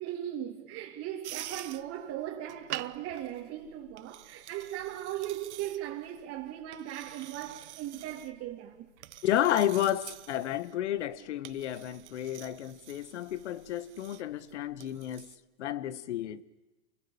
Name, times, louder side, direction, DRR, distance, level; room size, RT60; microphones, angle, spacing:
voice 1, 0.0-8.9, right 12 dB, 40° right, 2.7 m, -38 dB
sound 1, 1.2-15.4, right 14 dB, 70° right, 1.1 m, -47 dB
voice 2, 9.2-15.3 15.6-16.4, left 11 dB, 75° left, 1.4 m, -31 dB
28.5 x 21.5 x 8.7 m
hypercardioid pair, 110°, 35 cm